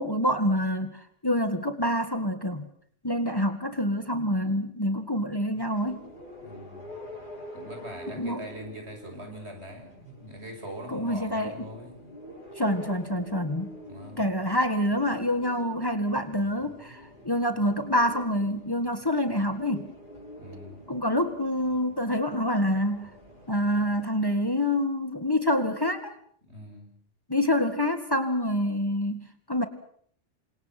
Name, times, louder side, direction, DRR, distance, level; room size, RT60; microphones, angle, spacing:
voice 1, 0.0-2.7 3.0-6.1 8.1-8.5 10.9-11.7 12.6-13.7 14.2-19.9 20.9-23.1 23.5-26.1 27.3-29.7, left 1 dB, 20° left, 8 dB, 1.9 m, -27 dB
sound 1, 5.5-24.0, left 1 dB, 45° left, 8.0 m, -47 dB
voice 2, 6.4-7.0 7.5-12.0 13.9-14.2 20.4-20.9 26.5-27.0, equal, 65° right, 3 dB, 7.0 m, -42 dB
29.0 x 26.5 x 6.1 m, 0.62 s
omnidirectional pair, 1.2 m